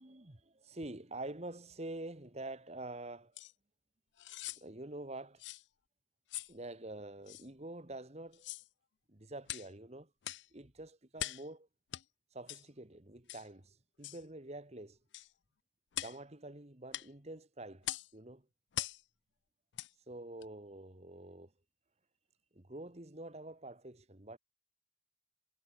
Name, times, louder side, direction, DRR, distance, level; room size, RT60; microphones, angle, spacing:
voice 1, 0.0-3.4 4.6-5.4 6.5-8.5 9.1-10.1 10.5-11.7 12.3-15.0 16.0-18.5 20.1-21.5 22.5-24.4, right 2 dB, 35° right, 1.7 m, -47 dB
sound 1, 3.4-3.5 4.2-4.6 5.4-5.6 6.3-6.5 7.3-7.5 8.3-8.7 9.5-9.7 10.2-10.5 11.2-11.5 11.9-12.0 12.5-12.7 13.3-13.5 14.0-14.2 15.1-15.3 15.9-16.2 16.9-17.1 17.8-18.1 18.7-19.0 19.7-19.9 20.4-20.5, left 14 dB, 70° left, 0.5 m, -42 dB
head